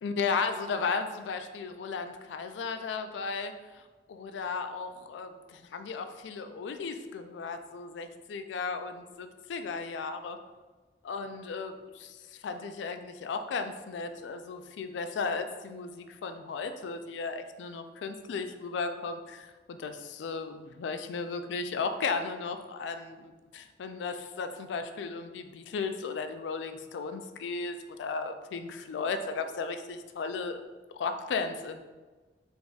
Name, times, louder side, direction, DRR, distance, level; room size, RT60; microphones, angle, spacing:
voice 1, 0.0-10.4 11.0-30.6 30.9-31.8, left 4 dB, 80° left, 8 dB, 0.3 m, -35 dB
3.9 x 3.5 x 2.3 m, 1.3 s
head